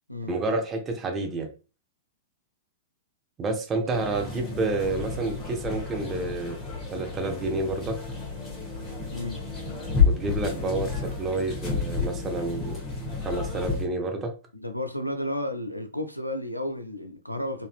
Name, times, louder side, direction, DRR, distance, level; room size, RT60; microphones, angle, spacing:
voice 1, 0.3-1.5 3.4-6.6 6.9-8.0 10.0-12.8 13.2-14.3, right 2 dB, 20° right, 0.7 m, -29 dB
sound 1, 3.9-13.9, left 5 dB, 20° left, 1.1 m, -30 dB
voice 2, 9.1-9.4 14.5-17.7, left 1 dB, 90° left, 0.4 m, -32 dB
4.0 x 2.5 x 2.4 m
figure-of-eight pair, 100°, 0 cm